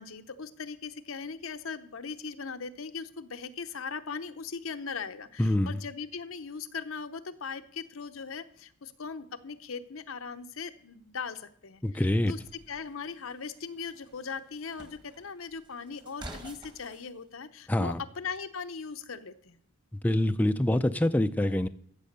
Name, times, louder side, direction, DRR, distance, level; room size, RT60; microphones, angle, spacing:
voice 1, 0.0-12.4 12.7-19.6, left 5 dB, 85° left, 9 dB, 0.8 m, -39 dB
voice 2, 5.4-5.8 11.8-12.3 17.7-18.0 20.0-21.7, left 1 dB, 10° left, 9 dB, 0.4 m, -25 dB
sound 1, 12.1-17.1, right 1 dB, 20° right, 1.4 m, -50 dB
13.5 x 7.5 x 6.7 m, 0.63 s
head